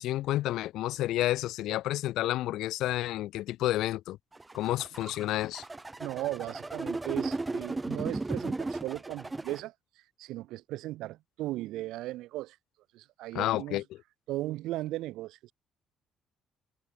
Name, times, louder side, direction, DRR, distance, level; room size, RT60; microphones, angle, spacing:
voice 1, 0.0-4.2 4.5-5.6 13.3-13.8, left 15 dB, 65° left, 2.9 m, -30 dB
sound 1, 4.3-9.6, right 2 dB, 10° right, 2.8 m, -35 dB
voice 2, 6.0-9.7 10.2-12.6 12.9-13.8 14.3-15.5, right 16 dB, 75° right, 4.0 m, -37 dB
cardioid pair, 175°, 0 cm